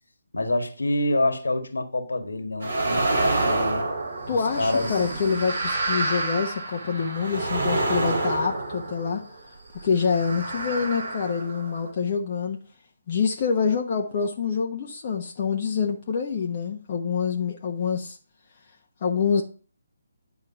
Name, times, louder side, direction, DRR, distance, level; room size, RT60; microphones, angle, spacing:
voice 1, 0.3-3.9 4.3-5.0, left 1 dB, 65° left, 1.8 m, -27 dB
sound 1, 2.6-9.4 10.0-11.9, right 2 dB, 55° right, 3.5 m, -28 dB
voice 2, 4.3-9.2 9.8-12.6 13.1-18.2 19.0-19.4, left 6 dB, 35° left, 1.1 m, -26 dB
10.0 x 4.7 x 5.7 m
figure-of-eight pair, 140°, 0 cm